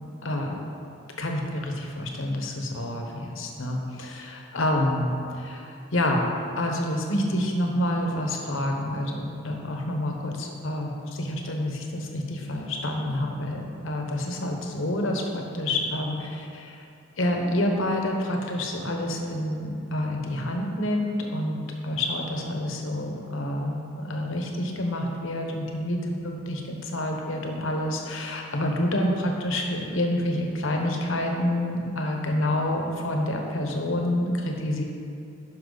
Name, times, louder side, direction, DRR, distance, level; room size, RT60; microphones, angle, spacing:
voice 1, 0.2-0.6 1.2-16.8 17.2-21.6 21.8-34.8, left 1 dB, 70° left, 1 dB, 1.0 m, -28 dB
10.5 x 5.6 x 4.0 m, 2.5 s
head